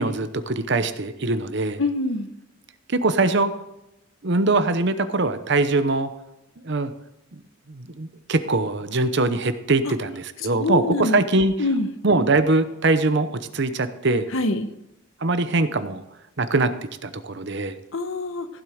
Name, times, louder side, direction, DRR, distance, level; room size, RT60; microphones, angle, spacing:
voice 1, 0.0-1.8 2.9-3.5 4.2-6.1 6.6-6.9 7.3-7.4 7.7-11.5 12.0-14.3 15.2-16.0 16.4-16.7 17.0-17.7, right 2 dB, 55° right, 11 dB, 0.8 m, -22 dB
voice 2, 1.8-2.3 10.6-11.2 11.6-11.9 14.3-14.7 17.9-18.5, left 2 dB, 65° left, 9 dB, 1.1 m, -24 dB
15.5 x 7.4 x 5.0 m, 0.90 s
head